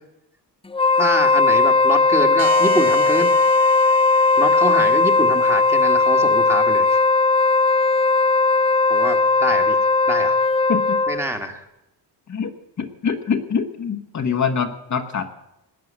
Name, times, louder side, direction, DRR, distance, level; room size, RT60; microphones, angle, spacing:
Wind instrument woodwind instrument, 0.7-11.3, left 3 dB, 15° left, 0.5 m, -17 dB
voice 1, 1.0-3.3 4.4-7.0 8.9-9.8 10.1-10.4 11.1-11.6, right 1 dB, 5° right, 4 dB, 1.6 m, -26 dB
sound 1, 2.4-5.8, right 8 dB, 50° right, 1.2 m, -35 dB
voice 2, 12.3-15.3, left 6 dB, 40° left, 5 dB, 1.3 m, -25 dB
19.5 x 9.4 x 7.4 m, 0.88 s
cardioid pair, 110°, 42 cm